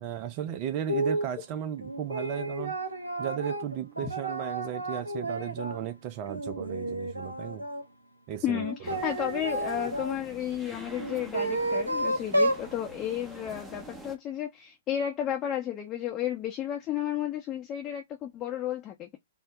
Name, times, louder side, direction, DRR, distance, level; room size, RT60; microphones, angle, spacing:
voice 1, 0.0-2.8 3.2-7.7 8.3-8.7 8.9-9.0, right 10 dB, 35° right, 0.4 m, -35 dB
sound 1, 0.9-1.3 1.8-5.8 6.3-7.8 8.5-10.2 11.0-12.7, right 1 dB, 85° right, 0.8 m, -31 dB
voice 2, 8.4-19.2, left 10 dB, 25° left, 0.7 m, -32 dB
sound 2, 8.8-14.2, right 2 dB, 10° right, 0.8 m, -46 dB
3.6 x 2.1 x 2.8 m
figure-of-eight pair, 115°, 0 cm